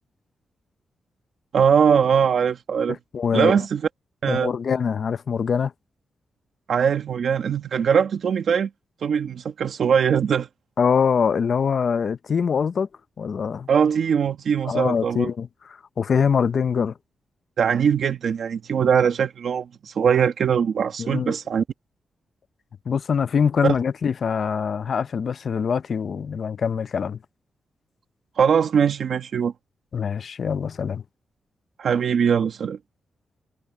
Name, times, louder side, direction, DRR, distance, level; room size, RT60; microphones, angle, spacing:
voice 1, 1.5-3.0 3.3-3.8 4.2-4.5 6.7-8.7 9.0-10.5 13.7-15.3 17.6-21.6 23.6-23.8 28.4-29.5 31.8-32.8, right 7 dB, 55° right, 1.4 m, -21 dB
voice 2, 2.9-3.6 4.3-5.7 10.8-12.9 13.2-13.7 14.6-15.5 16.0-16.9 21.0-21.3 22.9-27.2 29.9-31.0, left 6 dB, 45° left, 0.6 m, -23 dB
wide cardioid pair, 175°, 0 cm